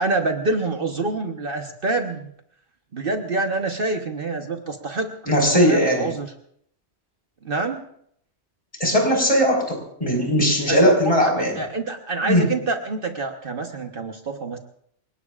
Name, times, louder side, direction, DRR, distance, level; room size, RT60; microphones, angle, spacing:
voice 1, 0.0-2.3 2.9-6.3 7.4-7.8 10.7-10.9 11.2-14.6, right 3 dB, 55° right, 4 dB, 1.3 m, -26 dB
voice 2, 5.3-6.1 8.8-11.6 12.2-12.5, equal, 30° left, 1 dB, 4.9 m, -19 dB
28.5 x 18.5 x 2.5 m, 0.70 s
omnidirectional pair, 1.2 m